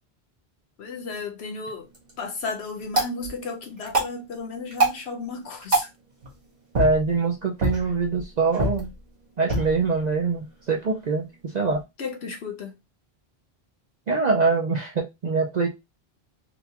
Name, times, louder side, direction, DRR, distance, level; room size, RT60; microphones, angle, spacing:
voice 1, 0.8-1.9 2.2-5.9 12.0-12.7, left 4 dB, 90° left, 1.1 m, -34 dB
sound 1, 1.7-11.8, right 2 dB, 80° right, 1.6 m, -30 dB
voice 2, 6.7-8.9 9.4-11.8 14.1-15.7, right 4 dB, 50° right, 0.7 m, -24 dB
3.9 x 2.3 x 2.8 m
omnidirectional pair, 1.0 m